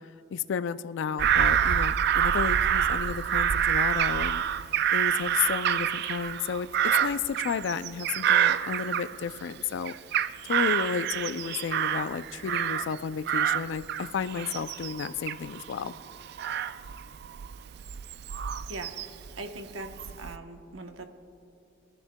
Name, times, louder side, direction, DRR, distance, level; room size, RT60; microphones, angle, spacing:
voice 1, 0.0-4.4 4.9-6.7 7.0-9.9 10.4-15.9, left 7 dB, 65° left, 13 dB, 0.3 m, -32 dB
Bird vocalization bird call bird song / Crow, 1.2-9.5 9.9-13.0 13.3-19.3 19.8-20.4, right 9 dB, 55° right, 0.3 m, -27 dB
voice 2, 18.7-19.9 20.2-21.1, right 2 dB, 75° right, 6 dB, 0.9 m, -41 dB
22.0 x 11.0 x 2.2 m, 2.9 s
head